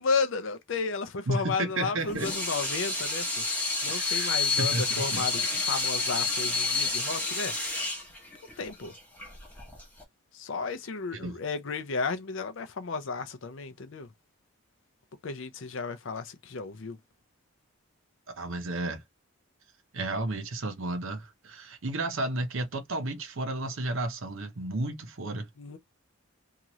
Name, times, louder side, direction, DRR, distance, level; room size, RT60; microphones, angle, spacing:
voice 1, 0.0-7.5 8.6-8.9 10.3-14.1 15.2-17.0 25.6-25.8, left 4 dB, 60° left, 0.5 m, -33 dB
voice 2, 1.3-2.3 3.9-5.2 11.1-11.4 18.4-19.0 19.9-25.5, right 2 dB, 65° right, 0.7 m, -32 dB
Water tap faucet / Sink (filling or washing), 2.0-10.0, left 3 dB, 5° left, 0.9 m, -29 dB
2.8 x 2.5 x 3.0 m
head